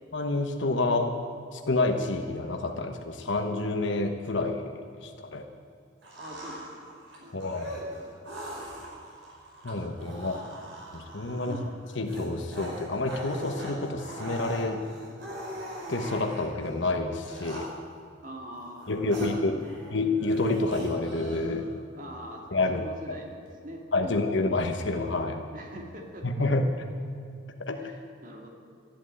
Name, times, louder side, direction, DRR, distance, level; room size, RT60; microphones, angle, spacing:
voice 1, 0.1-1.1 1.5-4.7 5.0-5.5 7.3-7.7 9.6-10.3 10.9-11.6 12.0-14.8 15.9-17.7 18.9-19.6 19.9-21.7 22.5-23.2 23.9-25.4 26.2-26.7 27.6-27.9, left 2 dB, 70° left, 4 dB, 1.1 m, -28 dB
sound 1, 6.0-16.7 17.2-18.0 18.5-19.9 20.2-21.7, equal, 70° right, 4.9 m, -41 dB
voice 2, 6.1-8.0 10.1-10.7 11.4-11.7 18.2-19.3 19.6-19.8 21.9-24.6 25.5-26.5 27.7-28.5, equal, 40° right, 1 dB, 2.4 m, -44 dB
13.5 x 12.0 x 9.0 m, 2.4 s
head